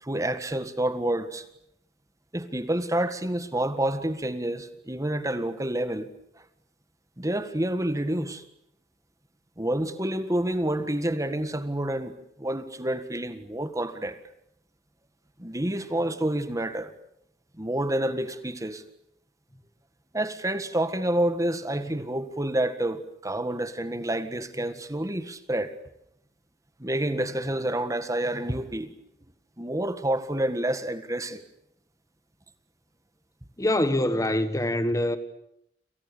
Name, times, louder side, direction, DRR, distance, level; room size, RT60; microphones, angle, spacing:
voice 1, 0.0-1.4 2.3-6.1 7.2-8.4 9.6-12.1 12.4-14.2 15.4-16.9 17.6-18.8 20.1-25.7 26.8-28.9 29.6-31.4, right 1 dB, 20° right, 1.7 m, -28 dB
voice 2, 33.6-35.2, left 1 dB, 20° left, 1.4 m, -24 dB
29.0 x 28.0 x 6.8 m
head